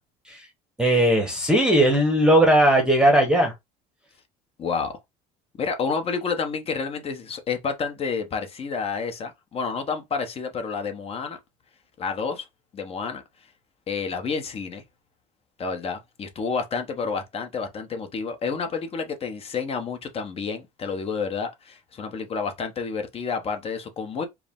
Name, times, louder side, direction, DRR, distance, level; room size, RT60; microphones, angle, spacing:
voice 1, 0.8-3.5, right 1 dB, 5° right, 1.0 m, -18 dB
voice 2, 4.6-5.0 5.6-11.4 12.0-12.5 12.7-13.2 13.9-14.8 15.6-24.3, left 5 dB, 35° left, 1.0 m, -29 dB
4.7 x 2.1 x 3.6 m
cardioid pair, 125°, 18 cm